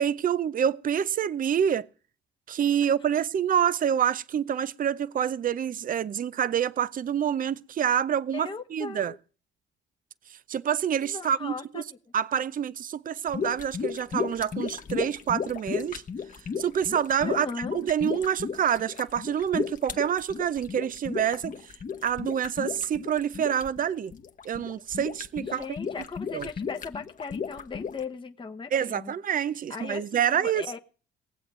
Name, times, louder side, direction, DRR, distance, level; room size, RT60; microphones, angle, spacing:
voice 1, 0.0-1.9 2.5-9.1 10.5-11.8 12.1-16.0 16.6-21.6 22.0-24.1 24.4-25.6 26.3-26.5 28.7-30.8, right 9 dB, 45° right, 0.6 m, -27 dB
voice 2, 8.3-9.2 11.0-12.0 17.2-17.8 25.4-29.1 29.7-30.8, left 5 dB, 25° left, 1.1 m, -38 dB
sound 1, 13.3-28.0, left 6 dB, 40° left, 1.3 m, -34 dB
19.0 x 7.8 x 7.5 m
cardioid pair, 90°, 20 cm